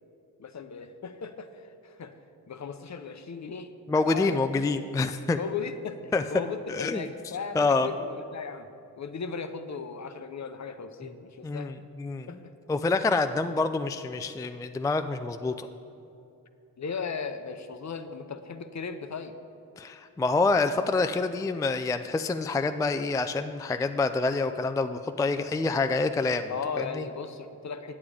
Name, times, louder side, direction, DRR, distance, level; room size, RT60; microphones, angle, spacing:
voice 1, 0.4-2.2 2.5-3.7 4.1-4.4 5.4-8.7 9.0-11.7 12.3-12.5 16.8-19.3 26.5-28.0, left 5 dB, 45° left, 9 dB, 0.7 m, -37 dB
voice 2, 3.9-5.4 6.1-6.2 6.7-7.0 7.5-7.9 11.4-12.4 12.7-15.7 19.8-26.5 26.8-27.1, left 3 dB, 10° left, 9 dB, 0.3 m, -27 dB
8.5 x 8.0 x 4.9 m, 2.7 s
cardioid pair, 45°, 37 cm